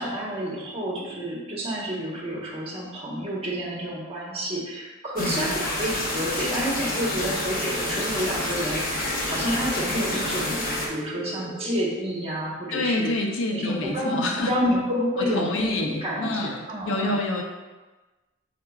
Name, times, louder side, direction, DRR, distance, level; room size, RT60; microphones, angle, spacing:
voice 1, 0.0-13.1 13.5-17.2, equal, 30° right, -4 dB, 1.1 m, -29 dB
voice 2, 5.2-5.5 12.7-14.5 15.3-17.4, left 2 dB, 65° left, 2 dB, 0.6 m, -27 dB
sound 1, 5.2-10.9, left 1 dB, 45° left, 0.9 m, -28 dB
sound 2, 6.9-11.9, right 4 dB, 60° right, 0.9 m, -40 dB
5.0 x 4.5 x 2.3 m, 1.2 s
head